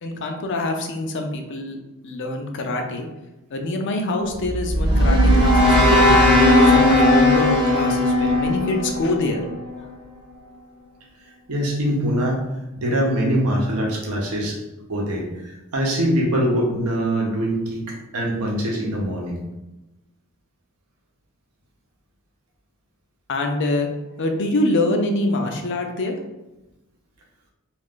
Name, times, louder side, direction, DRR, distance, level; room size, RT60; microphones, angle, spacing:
voice 1, 0.0-1.8 2.0-3.1 3.5-6.1 6.5-9.5 9.8-9.9 23.3-23.9 24.2-26.1, left 2 dB, 55° left, 4 dB, 0.5 m, -25 dB
sound 1, 4.4-9.6, left 1 dB, 25° right, 0.7 m, -16 dB
voice 2, 11.5-12.4 12.8-14.6 14.9-15.3 15.7-17.8 18.1-19.4, equal, 85° right, -1 dB, 0.8 m, -22 dB
2.4 x 2.4 x 3.6 m, 0.99 s
head